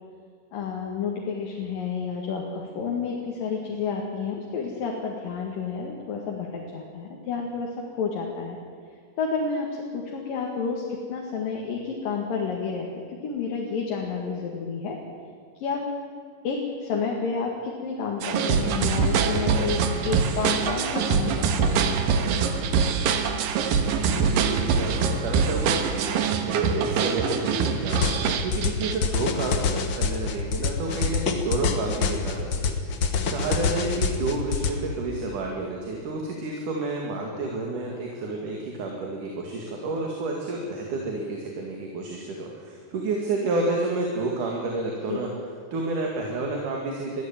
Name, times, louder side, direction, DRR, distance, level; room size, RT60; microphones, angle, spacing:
voice 1, 0.5-8.6 9.2-12.9 13.2-15.0 15.6-15.9 16.4-21.9 45.1-45.2, left 5 dB, 85° left, -1 dB, 3.7 m, -30 dB
sound 1, 18.2-28.9, right 5 dB, 90° right, 3.1 m, -24 dB
voice 2, 23.8-32.7 33.3-45.3 45.7-47.2, right 3 dB, 70° right, 0 dB, 3.7 m, -30 dB
sound 2, 27.9-34.7, left 5 dB, 50° left, 1.6 m, -26 dB
22.5 x 14.5 x 9.0 m, 2.1 s
omnidirectional pair, 3.9 m